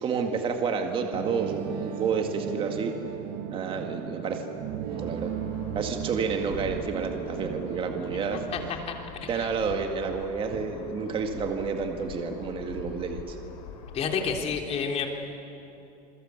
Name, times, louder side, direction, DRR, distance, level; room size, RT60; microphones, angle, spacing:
voice 1, 0.0-2.9 3.5-4.4 4.9-5.3 5.7-8.4 9.3-13.4, right 5 dB, 25° right, 4 dB, 2.0 m, -30 dB
sound 1, 1.1-8.7, right 10 dB, 50° right, 1.5 m, -36 dB
sound 2, 4.9-14.4, left 5 dB, 85° left, 4.4 m, -44 dB
voice 2, 8.5-8.9 9.2-9.5 13.9-15.1, left 6 dB, 30° left, 2 dB, 3.3 m, -30 dB
28.0 x 22.5 x 8.3 m, 2.9 s
supercardioid pair, 150°, 20 cm